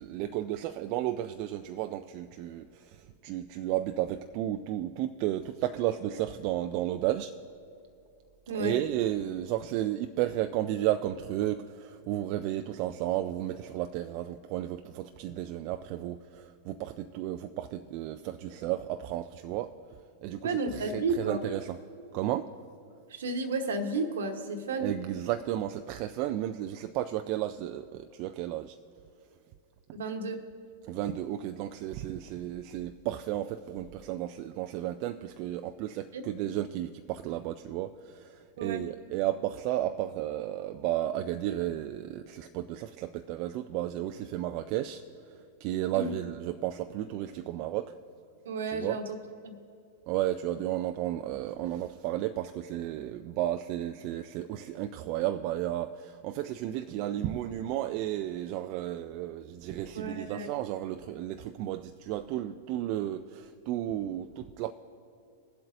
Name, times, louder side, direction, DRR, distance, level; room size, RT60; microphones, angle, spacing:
voice 1, 0.0-7.3 8.5-19.7 20.2-21.8 22.1-22.5 24.8-28.8 30.9-47.9 48.7-49.0 50.1-64.7, right 13 dB, 50° right, 7 dB, 0.4 m, -33 dB
voice 2, 8.5-8.8 20.4-21.4 23.1-24.9 29.9-30.4 36.1-36.2 38.6-38.9 45.9-46.1 48.4-49.0 49.4-49.5 59.9-60.5, right 3 dB, 75° right, 6 dB, 1.2 m, -32 dB
22.0 x 7.7 x 2.6 m, 2.6 s
hypercardioid pair, 100°, 0 cm